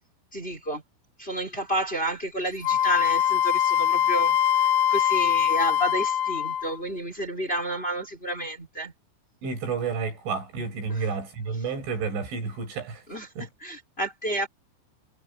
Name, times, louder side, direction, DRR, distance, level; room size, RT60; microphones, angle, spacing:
voice 1, 0.3-0.8 1.2-8.9 10.9-11.0 13.1-13.3 13.6-14.5, right 1 dB, 10° left, 5.5 m, -30 dB
Wind instrument woodwind instrument, 2.6-6.8, left 10 dB, 75° left, 3.2 m, -23 dB
voice 2, 9.4-13.0 13.4-13.5, right 5 dB, 75° right, 10.0 m, -30 dB
omnidirectional pair, 5.5 m